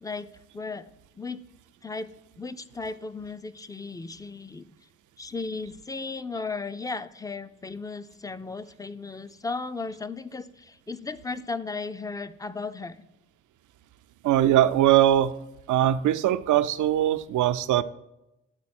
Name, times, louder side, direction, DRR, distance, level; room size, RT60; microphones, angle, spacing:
voice 1, 0.0-1.5 1.8-4.7 5.2-13.0, left 4 dB, 10° left, 13 dB, 0.4 m, -36 dB
voice 2, 14.2-15.3 15.7-17.8, right 12 dB, 70° right, 14 dB, 0.5 m, -21 dB
9.6 x 4.0 x 4.3 m, 0.91 s
supercardioid pair, 50°, 32 cm